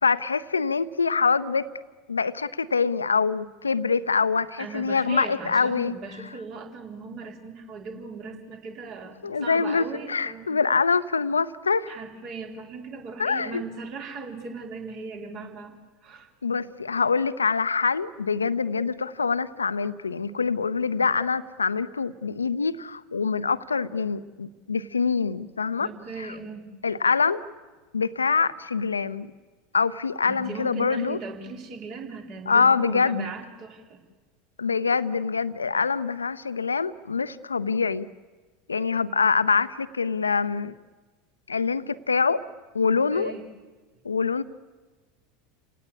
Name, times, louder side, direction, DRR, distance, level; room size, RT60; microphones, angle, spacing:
voice 1, 0.0-1.7 2.1-5.9 9.2-11.9 13.2-13.6 16.4-25.9 26.2-26.4 26.8-27.5 27.9-29.3 29.7-31.2 32.5-33.3 34.6-38.1 38.7-40.7 41.5-42.5 42.7-43.3 44.0-44.4, left 5 dB, 80° left, 15 dB, 0.7 m, -25 dB
voice 2, 4.6-10.5 11.9-15.7 16.0-16.3 25.8-26.7 30.3-34.0 42.9-43.4, right 4 dB, 45° right, 2 dB, 4.0 m, -38 dB
29.5 x 18.0 x 8.5 m, 1.3 s
figure-of-eight pair, 80°, 0 cm